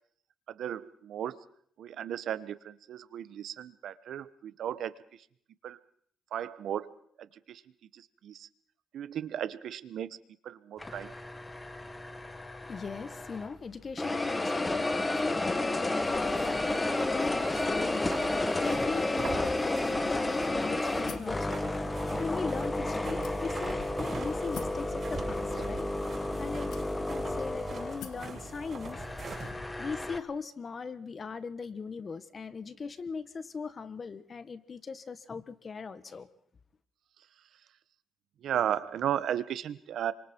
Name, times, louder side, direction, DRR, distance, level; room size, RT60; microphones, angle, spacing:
voice 1, 0.5-1.4 1.8-5.2 5.6-5.8 6.3-7.6 7.9-8.5 8.9-10.2 10.4-11.1 38.4-40.1, right 10 dB, 70° right, 1.1 m, -35 dB
sound 1, 10.8-13.6 14.0-30.2, left 2 dB, 20° left, 1.6 m, -32 dB
voice 2, 12.6-25.9 26.4-29.0 29.8-36.3, left 5 dB, 40° left, 1.5 m, -39 dB
sound 2, 16.0-29.5, right 4 dB, 40° right, 7.9 m, -43 dB
sound 3, 21.1-21.4 22.2-22.3 23.2-23.7 24.5-24.9 25.8-25.9 26.7-27.2 28.0-28.3, left 10 dB, 85° left, 1.9 m, -46 dB
27.5 x 25.0 x 4.6 m
cardioid pair, 90°, 0 cm